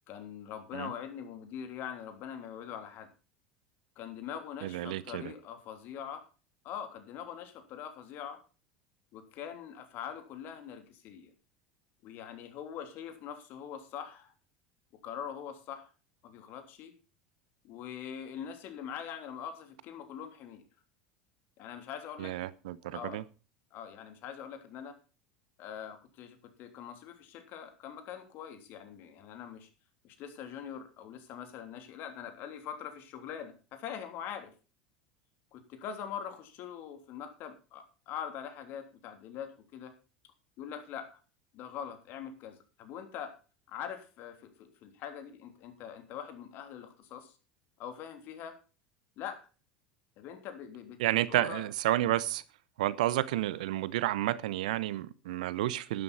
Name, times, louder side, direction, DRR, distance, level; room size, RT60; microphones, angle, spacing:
voice 1, 0.1-3.1 4.0-6.2 6.6-8.4 9.1-11.3 12.0-14.3 15.0-15.9 16.2-16.9 17.6-20.6 21.6-22.3 22.9-23.2 23.7-24.9 25.6-29.7 30.0-34.5 35.5-39.9 40.6-41.1 41.5-43.3 43.7-47.3 47.8-48.5 49.2-49.4 50.2-51.0 51.3-51.6, left 8 dB, 50° left, 3.2 m, -43 dB
voice 2, 4.6-5.3 22.2-23.2 51.0-52.4 52.8-56.0, right 15 dB, 70° right, 0.8 m, -31 dB
12.0 x 11.0 x 4.2 m
hypercardioid pair, 75°, 4 cm